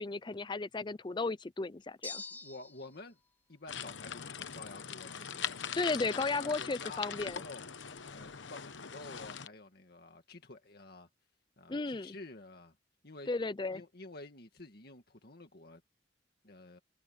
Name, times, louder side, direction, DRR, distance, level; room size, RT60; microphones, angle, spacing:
voice 1, 0.0-2.2 5.8-7.4 11.7-12.2 13.3-13.8, left 3 dB, 25° left, 0.5 m, -34 dB
sound 1, 2.0-3.0, left 3 dB, 10° left, 1.2 m, -44 dB
voice 2, 2.3-3.2 3.5-7.7 8.1-11.1 11.6-12.8 13.0-13.3 13.7-15.8 16.4-16.8, left 2 dB, 55° left, 2.0 m, -50 dB
sound 2, 3.7-9.5, left 7 dB, 80° left, 1.0 m, -42 dB
open air
head